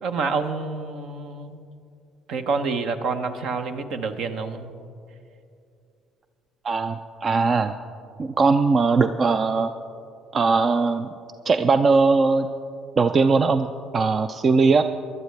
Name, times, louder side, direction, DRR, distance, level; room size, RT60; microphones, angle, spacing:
voice 1, 0.0-1.6 2.3-4.7, right 4 dB, 65° right, 8 dB, 0.9 m, -28 dB
voice 2, 6.6-7.7 8.2-9.7 10.3-11.1 11.5-12.5 13.0-13.7 13.9-14.8, right 4 dB, 40° right, 10 dB, 0.4 m, -20 dB
20.0 x 12.0 x 3.3 m, 2.5 s
hypercardioid pair, 55°, 0 cm